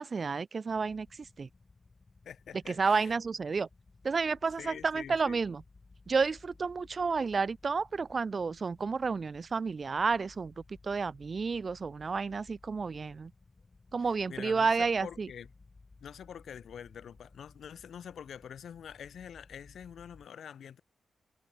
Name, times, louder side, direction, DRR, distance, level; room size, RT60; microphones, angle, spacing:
voice 1, 0.0-1.5 2.7-3.7 4.0-5.6 6.1-13.3 13.9-15.3, right 4 dB, 45° right, 0.5 m, -31 dB
sound 1, 0.7-20.3, left 3 dB, 30° left, 4.0 m, -59 dB
voice 2, 2.2-3.1 4.6-5.4 14.0-15.5 16.0-20.8, left 8 dB, 90° left, 3.2 m, -46 dB
wide cardioid pair, 110°, 0 cm